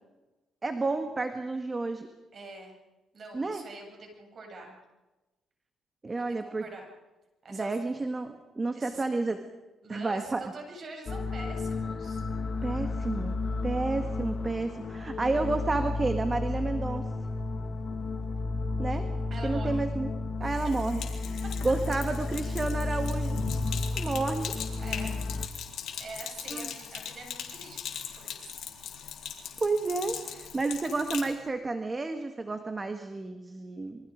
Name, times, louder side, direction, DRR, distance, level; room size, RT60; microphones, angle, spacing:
voice 1, 0.6-2.1 3.3-3.6 6.0-6.6 7.5-9.4 9.9-10.4 12.6-13.4 13.6-17.1 18.8-19.1 19.4-20.1 20.4-21.0 21.3-23.4 23.9-24.5 26.5-26.7 29.6-34.1, right 3 dB, 25° right, 7 dB, 1.7 m, -31 dB
voice 2, 2.3-2.8 3.1-4.8 6.1-6.9 7.4-7.8 8.7-9.0 9.8-12.2 19.3-19.9 20.6-20.7 24.8-25.1 26.0-28.5, right 3 dB, 50° right, 2 dB, 7.9 m, -45 dB
sound 1, 11.1-25.5, left 3 dB, 45° left, 1.8 m, -32 dB
Sink (filling or washing), 20.4-31.3, left 8 dB, 70° left, 4.0 m, -40 dB
28.0 x 23.5 x 5.2 m, 1.1 s
cardioid pair, 90°, 0 cm